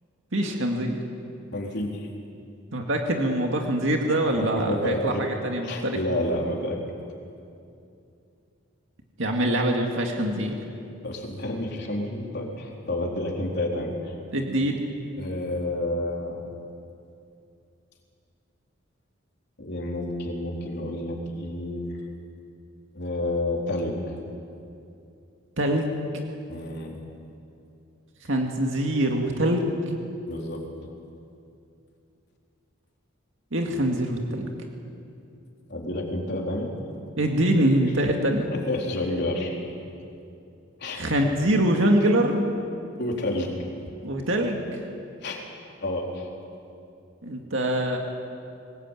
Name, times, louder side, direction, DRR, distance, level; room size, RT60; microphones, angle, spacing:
voice 1, 0.3-1.0 2.7-6.0 9.2-10.6 14.3-14.8 25.6-26.0 28.2-29.7 33.5-34.5 37.2-38.5 40.9-42.4 44.0-44.8 47.2-48.0, right 1 dB, 65° right, 2 dB, 2.2 m, -24 dB
voice 2, 1.5-2.1 4.4-5.3 5.6-6.8 11.0-14.1 15.2-16.4 19.6-22.0 22.9-24.2 26.5-27.0 30.3-30.6 35.7-36.7 38.5-39.6 40.8-41.1 43.0-43.6 45.2-45.5 45.8-46.3, left 1 dB, 50° left, -1 dB, 4.1 m, -30 dB
23.5 x 20.0 x 9.2 m, 2.6 s
head